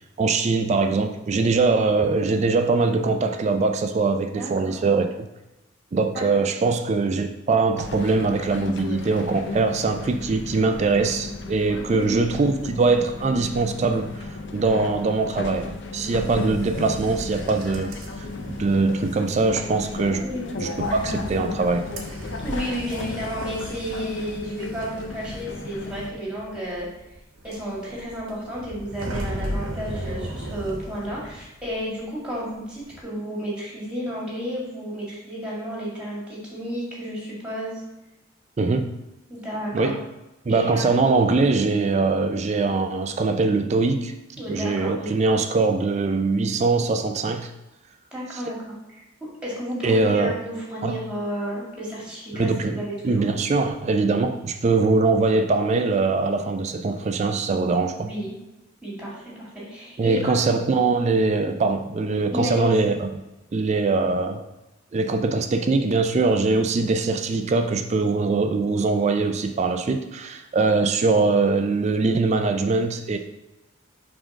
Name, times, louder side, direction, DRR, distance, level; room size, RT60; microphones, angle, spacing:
voice 1, 0.2-5.3 5.9-14.1 14.5-17.9 18.2-20.3 20.6-21.9 38.6-38.9 39.7-40.0 40.5-44.1 44.5-47.5 49.8-50.3 50.8-51.0 52.3-52.8 53.0-58.1 60.0-63.1 63.5-64.4 64.9-73.2, right 3 dB, 35° right, 7 dB, 0.3 m, -22 dB
voice 2, 4.3-4.8 6.1-6.2 10.1-10.2 11.9-12.3 20.2-20.5 22.4-26.9 27.4-37.8 39.3-39.9 40.5-41.0 44.4-45.1 48.1-53.2 58.0-58.3 58.8-60.5 62.3-62.9, equal, 5° right, -5 dB, 2.0 m, -32 dB
sound 1, 7.8-26.1, left 2 dB, 60° left, 0.6 m, -34 dB
sound 2, 16.1-32.0 32.3-33.0, equal, 85° right, 1.0 m, -37 dB
5.1 x 3.7 x 5.1 m, 0.98 s
head